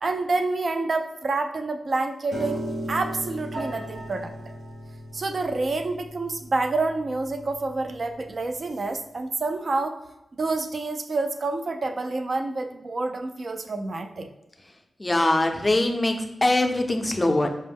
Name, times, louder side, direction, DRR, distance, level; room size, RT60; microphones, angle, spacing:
voice 1, 0.0-2.6 2.9-4.3 5.1-10.0 10.3-14.3, right 3 dB, 50° right, 6 dB, 0.4 m, -28 dB
Piano, 2.3-8.5, right 1 dB, 90° right, 0.8 m, -37 dB
voice 2, 15.0-17.6, left 2 dB, 20° left, 4 dB, 0.5 m, -22 dB
5.1 x 2.0 x 3.4 m, 0.90 s
wide cardioid pair, 115°, 0 cm